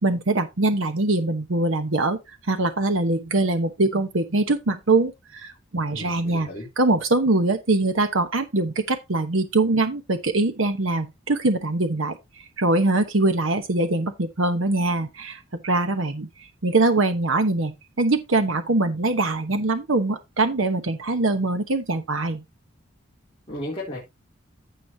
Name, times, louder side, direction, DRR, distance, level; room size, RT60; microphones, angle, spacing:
voice 1, 0.0-2.2 2.5-6.5 6.8-22.4, right 2 dB, 70° right, 1.0 m, -23 dB
voice 2, 5.9-6.7 23.5-24.0, left 1 dB, 25° left, 3.6 m, -34 dB
15.5 x 5.2 x 2.8 m
head